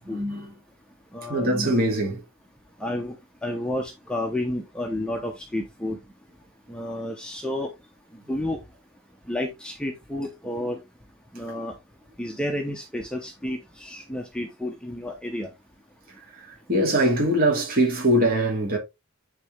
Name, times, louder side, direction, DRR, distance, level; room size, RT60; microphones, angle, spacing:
voice 1, 0.1-0.5 1.3-2.2 16.4-18.8, right 1 dB, 40° right, 2.8 m, -22 dB
voice 2, 1.1-1.5 2.8-3.2 3.4-6.0 6.7-7.7 8.1-8.6 9.3-10.8 11.3-11.7 12.2-15.5, left 1 dB, 5° left, 0.9 m, -31 dB
9.6 x 4.1 x 3.5 m
head